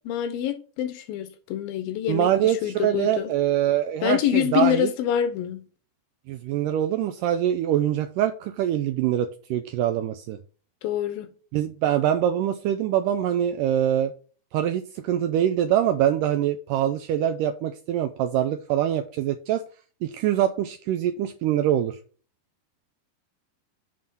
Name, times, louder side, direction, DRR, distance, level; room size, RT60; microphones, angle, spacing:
voice 1, 0.1-3.3 4.0-5.6 10.8-11.3, left 11 dB, 80° left, 2.4 m, -26 dB
voice 2, 2.1-4.9 6.3-10.4 11.5-14.1 14.5-19.6 20.0-22.0, right 11 dB, 85° right, 1.9 m, -24 dB
7.6 x 3.8 x 5.5 m
omnidirectional pair, 4.3 m